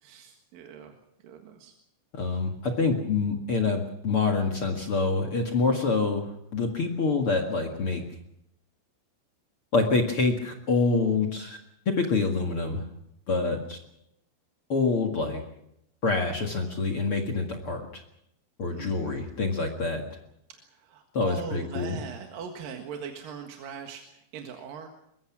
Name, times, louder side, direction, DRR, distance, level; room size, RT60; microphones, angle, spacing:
voice 1, 0.0-0.9 1.2-1.7 18.7-19.3 20.5-24.9, right 7 dB, 60° right, 3 dB, 2.9 m, -41 dB
voice 2, 2.1-8.0 9.7-11.6 11.9-12.8 13.3-13.8 14.7-15.4 16.0-18.0 18.6-20.0 21.1-22.0, left 3 dB, 45° left, 3 dB, 1.8 m, -26 dB
23.0 x 22.5 x 6.1 m, 0.79 s
omnidirectional pair, 5.3 m